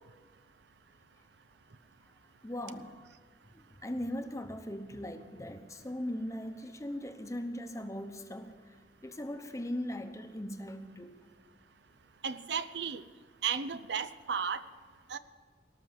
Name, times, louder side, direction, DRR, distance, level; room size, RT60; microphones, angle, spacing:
voice 1, 2.4-3.0 3.5-8.6 9.0-11.2, left 1 dB, 20° left, 7 dB, 0.9 m, -39 dB
voice 2, 12.2-13.0 13.4-14.6 15.1-15.2, right 7 dB, 70° right, 13 dB, 0.6 m, -34 dB
18.5 x 6.2 x 9.6 m, 1.5 s
head